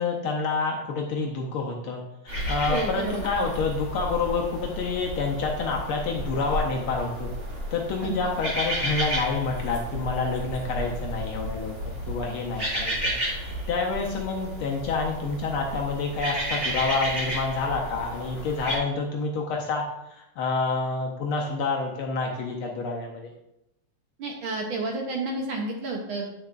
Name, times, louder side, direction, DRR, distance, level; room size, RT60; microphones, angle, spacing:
voice 1, 0.0-7.3 7.7-11.7 12.1-13.1 13.4-23.3, left 4 dB, 85° left, 0 dB, 1.1 m, -28 dB
sound 1, 2.3-18.8, equal, 20° right, 2.3 m, -32 dB
voice 2, 2.7-3.2 8.0-8.3 24.2-26.3, right 2 dB, 75° right, 0 dB, 1.1 m, -31 dB
9.9 x 6.5 x 2.5 m, 0.89 s
omnidirectional pair, 3.4 m